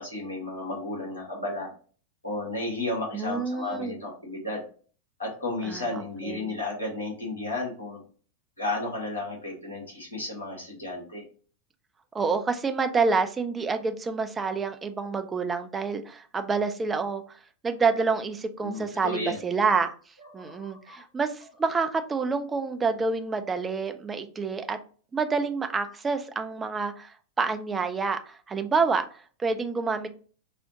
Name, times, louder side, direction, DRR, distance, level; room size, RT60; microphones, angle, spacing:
voice 1, 0.0-1.7 2.2-4.6 5.2-8.0 8.6-11.2 18.6-19.4 20.2-21.0, left 2 dB, 75° left, -4 dB, 1.3 m, -33 dB
voice 2, 3.1-4.0 5.6-5.9 6.2-6.5 12.1-17.2 17.6-19.9 20.3-24.8 25.1-30.1, right 4 dB, 15° right, 8 dB, 0.4 m, -28 dB
3.9 x 2.0 x 2.7 m, 0.41 s
figure-of-eight pair, 90°, 0 cm